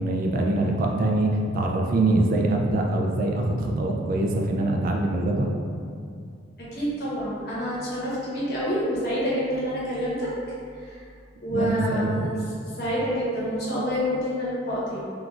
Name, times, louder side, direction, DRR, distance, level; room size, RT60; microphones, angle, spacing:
voice 1, 0.0-5.5 11.5-12.3, right 2 dB, 45° right, 1 dB, 0.3 m, -24 dB
voice 2, 6.6-10.3 10.8-11.0 11.4-12.3 12.8-15.1, equal, 55° left, -8 dB, 1.0 m, -27 dB
3.8 x 2.4 x 2.4 m, 2.3 s
head